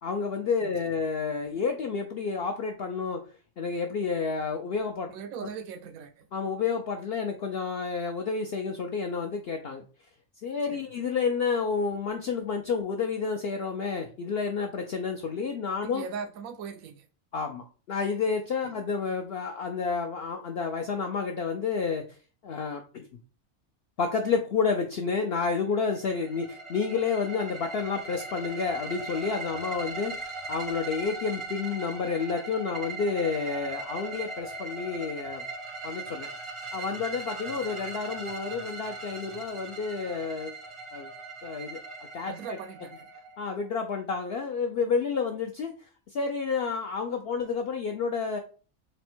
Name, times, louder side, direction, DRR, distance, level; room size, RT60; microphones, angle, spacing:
voice 1, 0.0-3.2 3.6-5.1 6.3-9.8 10.4-16.0 17.3-22.0 22.4-23.1 24.0-30.1 30.5-35.4 35.8-36.3 36.7-40.6 40.9-41.1 41.4-41.8 42.1-42.3 43.4-45.7 46.1-48.4, left 5 dB, 65° left, 0.6 m, -30 dB
voice 2, 5.1-6.3 10.7-10.9 15.8-17.1 18.6-18.7 42.3-43.1, right 6 dB, 85° right, 1.0 m, -40 dB
sound 1, 25.9-43.7, right 3 dB, 50° right, 0.3 m, -39 dB
4.2 x 2.1 x 4.3 m
omnidirectional pair, 1.4 m